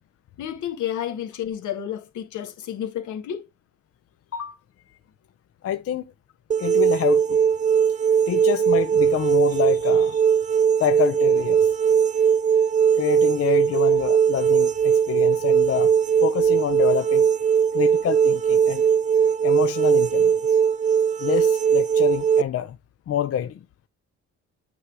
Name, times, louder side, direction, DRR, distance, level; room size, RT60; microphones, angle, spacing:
voice 1, 0.4-3.4, left 10 dB, 75° left, 1.5 m, -31 dB
voice 2, 5.6-6.0 6.6-7.4 8.3-10.2 10.8-11.7 13.0-15.9 16.2-17.3 17.7-18.9 19.4-20.4 21.2-22.8 23.1-23.6, left 10 dB, 50° left, 0.6 m, -27 dB
sound 1, 6.5-22.4, right 7 dB, 25° right, 0.3 m, -19 dB
8.5 x 3.3 x 4.8 m
cardioid pair, 90°, 30 cm